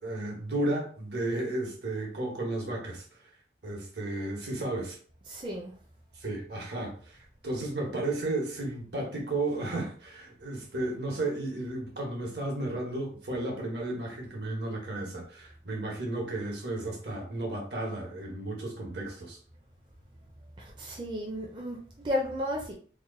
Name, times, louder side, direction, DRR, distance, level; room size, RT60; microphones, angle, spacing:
voice 1, 0.0-3.0 3.6-5.0 6.2-19.4, right 2 dB, 70° right, 0 dB, 1.2 m, -33 dB
voice 2, 5.3-5.7 20.6-22.7, left 1 dB, 25° right, -1 dB, 0.5 m, -33 dB
3.0 x 2.3 x 3.8 m, 0.43 s
head